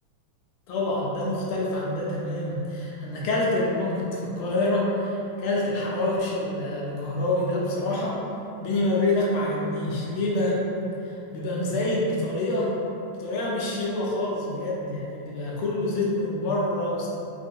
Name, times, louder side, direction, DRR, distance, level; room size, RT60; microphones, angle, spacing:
voice 1, 0.7-8.2 8.6-10.6 11.0-12.8 13.2-17.1, left 2 dB, 80° left, -4 dB, 1.5 m, -26 dB
4.0 x 2.2 x 2.6 m, 2.8 s
omnidirectional pair, 2.4 m